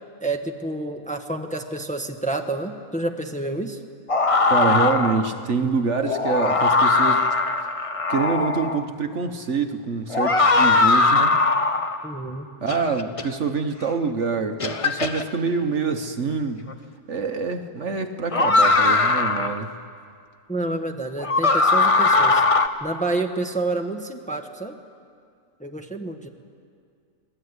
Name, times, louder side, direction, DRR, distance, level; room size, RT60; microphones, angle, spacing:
voice 1, 0.2-3.8 12.0-12.5 20.5-22.4 22.8-24.8 25.6-26.3, right 2 dB, 5° left, 3 dB, 1.3 m, -29 dB
sound 1, 4.1-5.3 6.0-8.8 10.1-12.1 12.7-13.2 14.0-14.1 14.6-15.2 16.7-16.8 18.3-19.6 21.2-22.7, left 3 dB, 30° left, 0.8 m, -20 dB
voice 2, 4.5-7.4 8.1-11.4 12.6-16.7 17.1-19.7, right 4 dB, 55° right, 6 dB, 1.4 m, -26 dB
26.5 x 19.5 x 9.7 m, 2.3 s
omnidirectional pair, 1.6 m